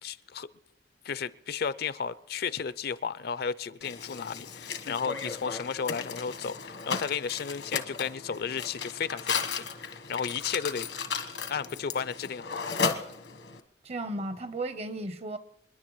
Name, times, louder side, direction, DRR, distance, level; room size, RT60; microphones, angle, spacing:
voice 1, 0.0-0.5 1.0-10.9 11.5-12.6, left 6 dB, 60° left, 0.5 m, -33 dB
Mechanisms, 3.8-13.6, left 5 dB, 90° left, 1.2 m, -35 dB
voice 2, 13.8-15.4, right 2 dB, 35° right, 0.8 m, -34 dB
29.5 x 10.5 x 3.1 m
head